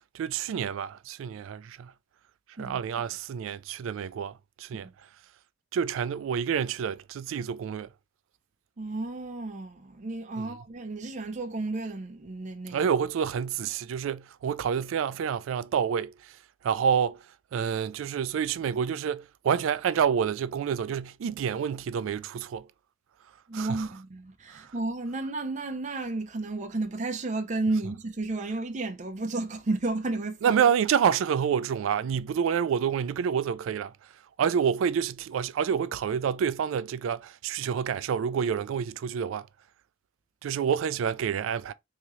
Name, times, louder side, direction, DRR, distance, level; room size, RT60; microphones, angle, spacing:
voice 1, 0.0-1.9 2.6-4.9 5.7-7.9 10.4-10.5 12.7-16.4 16.6-17.2 17.5-22.7 23.5-23.9 24.5-24.7 30.4-34.1 34.4-39.5 40.4-41.7, right 7 dB, 90° right, 0.3 m, -28 dB
voice 2, 8.8-12.8 23.5-30.6, right 2 dB, 40° right, 0.5 m, -32 dB
3.6 x 2.9 x 3.0 m
head